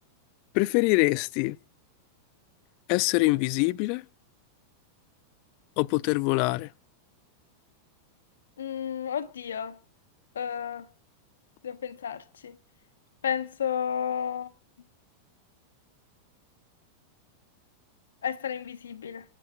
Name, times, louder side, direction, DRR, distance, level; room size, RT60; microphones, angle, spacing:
voice 1, 0.5-1.6 2.9-4.1 5.8-6.7, left 22 dB, 45° left, 0.6 m, -24 dB
voice 2, 8.6-9.8 10.3-10.9 11.6-12.6 13.2-14.5 18.2-19.2, left 8 dB, 65° left, 1.0 m, -32 dB
28.0 x 10.5 x 2.5 m
figure-of-eight pair, 90°, 0 cm